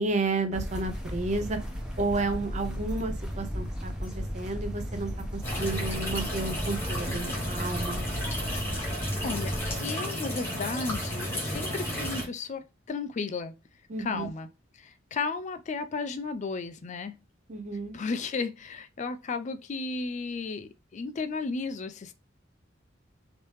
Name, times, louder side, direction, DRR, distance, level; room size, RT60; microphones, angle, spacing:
voice 1, 0.0-1.6 2.0-5.1 5.5-8.0 13.9-14.3 17.5-18.0, right 3 dB, 35° right, 0.5 m, -31 dB
sound 1, 0.5-9.8, equal, 5° right, 0.7 m, -35 dB
sound 2, 5.4-12.3, equal, 10° left, 1.3 m, -33 dB
voice 2, 9.2-13.6 14.0-14.5 14.7-17.2 17.9-22.1, left 4 dB, 40° left, 0.4 m, -34 dB
3.2 x 2.8 x 3.1 m
head